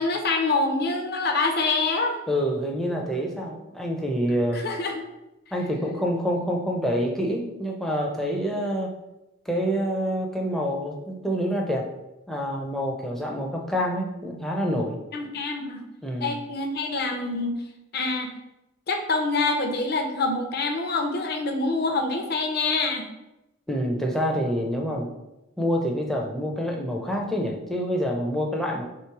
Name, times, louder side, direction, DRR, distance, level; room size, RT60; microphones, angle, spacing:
voice 1, 0.0-2.2 4.5-5.0 15.1-15.8 16.2-17.6 17.9-18.3 18.9-23.1, left 3 dB, 50° left, 4 dB, 0.6 m, -26 dB
voice 2, 2.3-4.6 5.5-8.9 9.5-11.9 12.3-15.0 16.0-16.4 23.7-25.1 25.6-28.8, equal, ahead, 0 dB, 0.4 m, -27 dB
3.1 x 3.0 x 4.5 m, 0.94 s
head